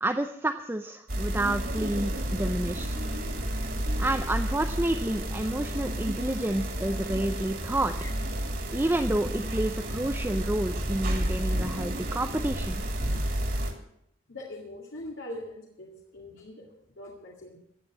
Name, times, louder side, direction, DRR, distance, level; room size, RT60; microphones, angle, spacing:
voice 1, 0.0-2.9 4.0-7.9 8.7-12.8, right 1 dB, 10° right, 6 dB, 0.5 m, -29 dB
sound 1, 1.1-13.7, right 1 dB, 50° right, 2.4 m, -31 dB
voice 2, 14.3-17.6, left 1 dB, 70° left, -2 dB, 2.3 m, -42 dB
15.5 x 8.3 x 7.4 m, 0.75 s
head